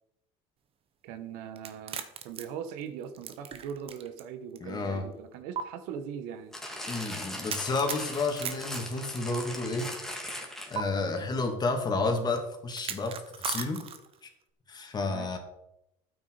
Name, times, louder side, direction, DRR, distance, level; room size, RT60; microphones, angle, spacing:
voice 1, 1.0-6.6 15.0-15.4, right 8 dB, 75° right, 10 dB, 1.5 m, -40 dB
sound 1, 1.6-4.2 4.6-4.7 5.6-5.7 7.5-9.6 10.8-10.9 12.7-14.2, right 8 dB, 40° right, 1.5 m, -37 dB
voice 2, 4.6-5.0 6.9-9.9 10.7-13.8 14.7-15.4, left 3 dB, 25° left, 4 dB, 2.9 m, -31 dB
sound 2, 6.5-11.0 11.7-11.8, left 1 dB, 5° left, 2.8 m, -39 dB
12.5 x 9.4 x 5.1 m, 0.83 s
supercardioid pair, 120°, 15 cm